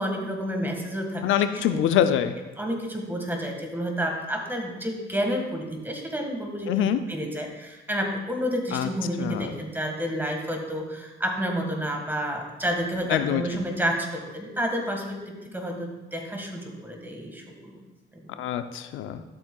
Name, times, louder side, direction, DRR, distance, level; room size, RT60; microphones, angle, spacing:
voice 1, 0.0-1.3 1.5-2.0 2.6-17.8 18.1-18.4, equal, 10° right, 2 dB, 1.7 m, -30 dB
voice 2, 1.2-2.3 6.7-7.0 8.7-8.9 9.2-9.5 13.1-13.4 18.4-19.2, left 10 dB, 85° left, 9 dB, 0.5 m, -24 dB
12.0 x 7.2 x 2.3 m, 1.1 s
cardioid pair, 90°, 20 cm